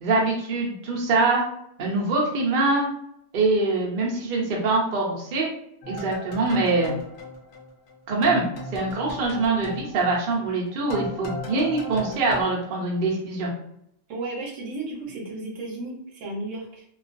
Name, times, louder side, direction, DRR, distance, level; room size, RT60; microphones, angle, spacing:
voice 1, 0.0-1.4 1.8-2.9 3.3-5.5 5.9-6.9 8.1-8.4 8.7-13.5, right 3 dB, 55° right, -2 dB, 0.7 m, -24 dB
sound 1, 5.8-8.0 8.2-12.4, left 1 dB, 65° left, 0.9 m, -38 dB
voice 2, 14.1-16.8, right 2 dB, 75° right, -1 dB, 1.0 m, -34 dB
2.4 x 2.3 x 2.4 m, 0.73 s
omnidirectional pair, 1.3 m